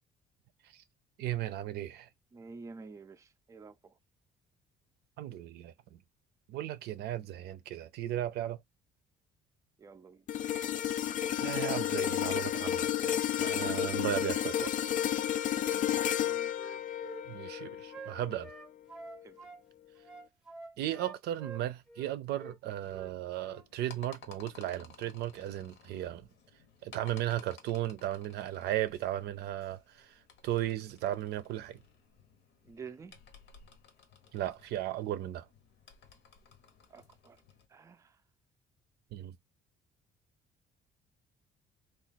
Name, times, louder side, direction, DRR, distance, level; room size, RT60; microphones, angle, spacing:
voice 1, 1.2-2.1 5.2-6.0 6.5-8.6 11.4-14.9 17.3-18.5 20.8-26.3 26.8-31.8 34.3-35.5 39.1-39.3, right 13 dB, 80° right, 0.5 m, -36 dB
voice 2, 2.3-4.0 9.8-10.3 10.7-11.0 15.5-16.1 19.2-19.4 32.6-33.2 36.9-37.4 37.7-38.2, right 4 dB, 20° right, 0.4 m, -50 dB
sound 1, 10.3-18.6 19.1-19.3, left 11 dB, 50° left, 0.4 m, -32 dB
Wind instrument woodwind instrument, 16.1-19.6 20.0-22.1 22.4-22.6 22.9-23.1 23.4-23.6, right 3 dB, ahead, 0.8 m, -48 dB
sound 2, 22.8-37.7, left 6 dB, 85° left, 1.0 m, -57 dB
3.1 x 2.4 x 3.9 m
cardioid pair, 110°, 17 cm